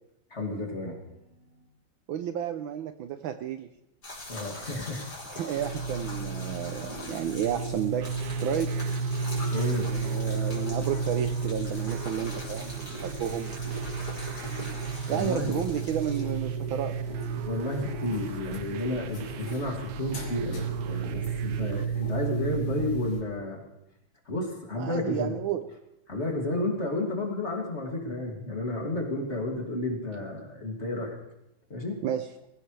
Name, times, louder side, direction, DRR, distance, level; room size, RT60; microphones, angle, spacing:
voice 1, 0.3-1.3 4.3-5.1 9.5-9.9 15.1-15.6 17.4-23.6 24.3-25.4 26.1-31.2 31.7-32.0, left 2 dB, 30° left, 0 dB, 2.8 m, -32 dB
voice 2, 2.1-3.7 5.3-8.1 8.4-8.7 9.9-13.6 15.1-16.9 24.8-25.6 32.0-32.3, right 9 dB, 70° right, 9 dB, 1.4 m, -31 dB
sound 1, 4.0-16.2, left 2 dB, 45° left, 4.5 m, -43 dB
sound 2, 5.5-23.2, right 4 dB, 75° left, 3.6 m, -33 dB
sound 3, 8.0-21.9, right 13 dB, 90° right, 1.6 m, -40 dB
21.0 x 16.0 x 3.3 m, 0.86 s
omnidirectional pair, 2.4 m